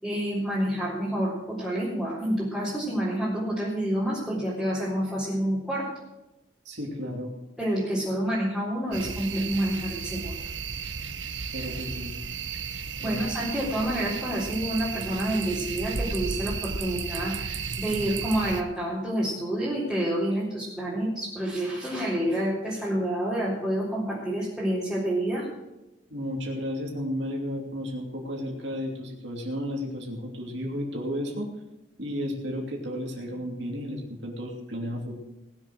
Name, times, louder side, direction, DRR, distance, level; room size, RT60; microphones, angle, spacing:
voice 1, 0.0-5.9 7.6-10.4 12.6-25.5, right 1 dB, 5° left, -9 dB, 3.8 m, -28 dB
voice 2, 6.6-7.3 11.5-12.2 13.0-13.3 26.1-31.5 32.0-35.1, equal, 65° right, 0 dB, 2.8 m, -33 dB
sound 1, 8.9-18.6, right 5 dB, 80° right, 1.1 m, -34 dB
19.5 x 7.3 x 6.4 m, 0.98 s
head